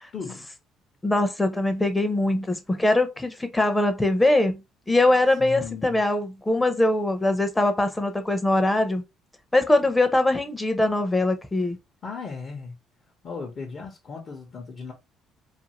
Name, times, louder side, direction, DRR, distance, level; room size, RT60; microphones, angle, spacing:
voice 1, 0.1-0.5 5.4-6.0 12.0-12.8 13.2-14.9, left 4 dB, 50° left, 0.7 m, -36 dB
voice 2, 1.0-4.6 4.9-9.0 9.5-11.8, left 2 dB, 15° left, 0.6 m, -22 dB
2.5 x 2.4 x 2.9 m
supercardioid pair, 80°, 0 cm